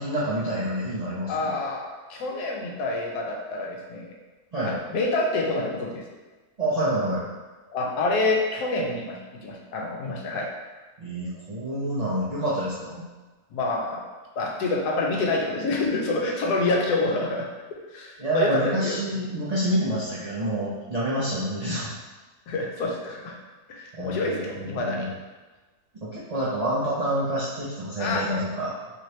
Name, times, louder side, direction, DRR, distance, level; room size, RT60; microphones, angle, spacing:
voice 1, 0.0-1.5 4.5-4.8 6.6-7.2 11.0-13.1 18.2-21.9 23.9-25.1 26.0-28.7, right 1 dB, 65° right, -9 dB, 0.3 m, -27 dB
voice 2, 1.3-4.2 4.6-6.0 7.7-10.5 13.5-14.0 14.4-17.5 17.9-19.0 22.5-23.4 23.7-25.1 28.0-28.3, left 2 dB, 80° left, 0 dB, 1.2 m, -27 dB
3.3 x 2.8 x 3.1 m, 1.3 s
omnidirectional pair, 1.7 m